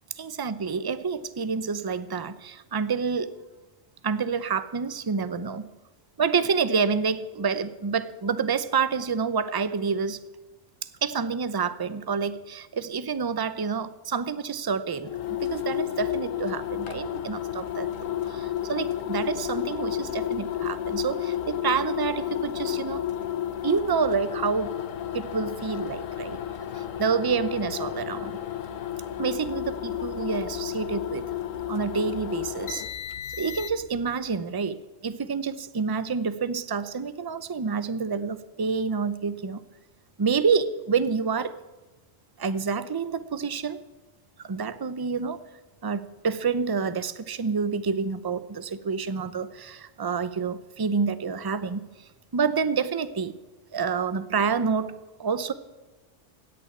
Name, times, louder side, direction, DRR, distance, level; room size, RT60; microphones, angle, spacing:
voice 1, 0.2-3.4 4.0-5.7 6.2-10.2 11.0-23.0 23.6-24.7 25.1-26.4 26.7-28.4 29.2-31.3 31.7-32.8 33.3-39.6 40.2-41.6 42.4-43.8 44.4-45.4 45.8-53.4 53.7-55.5, right 5 dB, 25° right, 13 dB, 0.5 m, -28 dB
sound 1, 15.0-34.0, left 11 dB, 90° left, 1.3 m, -32 dB
17.0 x 6.9 x 9.7 m, 1.1 s
omnidirectional pair, 1.3 m